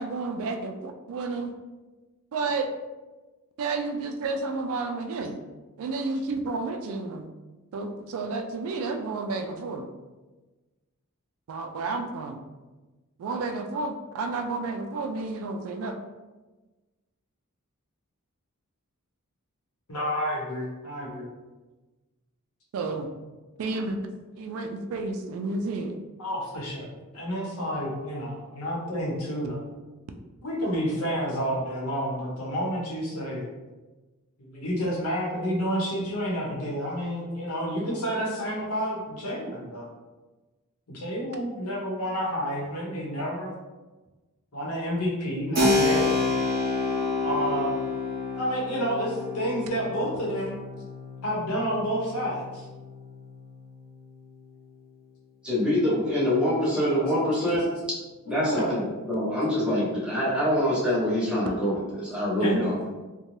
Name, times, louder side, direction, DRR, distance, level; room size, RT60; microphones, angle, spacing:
voice 1, 0.0-1.5 2.3-2.7 3.6-5.4 5.8-7.3 7.7-9.8 11.5-12.4 13.2-16.0 22.7-23.1 23.6-24.0 24.4-26.0, right 3 dB, 65° right, 5 dB, 0.3 m, -31 dB
voice 2, 19.9-21.3 26.2-29.7 30.4-33.4 34.4-39.9 40.9-43.5 44.5-46.1 47.2-47.7 48.4-50.5 51.2-52.7 58.3-58.8 62.4-62.6, equal, 75° left, -4 dB, 0.9 m, -29 dB
Keyboard (musical), 45.5-53.9, left 3 dB, 45° right, 0.7 m, -29 dB
voice 3, 55.4-57.7 58.3-62.8, equal, 5° right, -8 dB, 0.9 m, -25 dB
2.6 x 2.2 x 3.1 m, 1.2 s
head